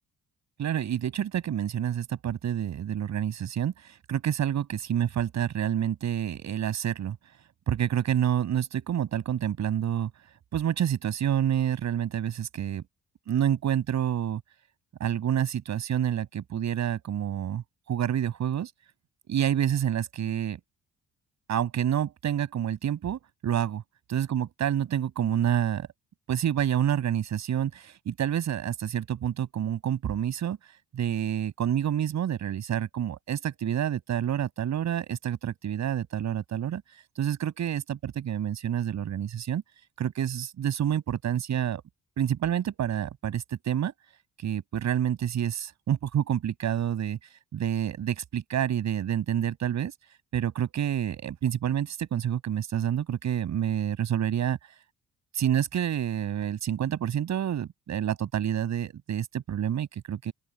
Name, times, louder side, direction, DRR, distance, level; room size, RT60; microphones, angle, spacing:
voice 1, 0.6-7.2 7.7-10.1 10.5-12.8 13.3-14.4 15.0-18.7 19.3-20.6 21.5-23.8 24.1-25.9 26.3-30.6 30.9-36.8 37.2-39.6 40.0-41.8 42.2-43.9 44.4-47.2 47.5-49.9 50.3-54.6 55.3-60.3, right 10 dB, 65° right, 6.8 m, -28 dB
open air
cardioid pair, 90°, 30 cm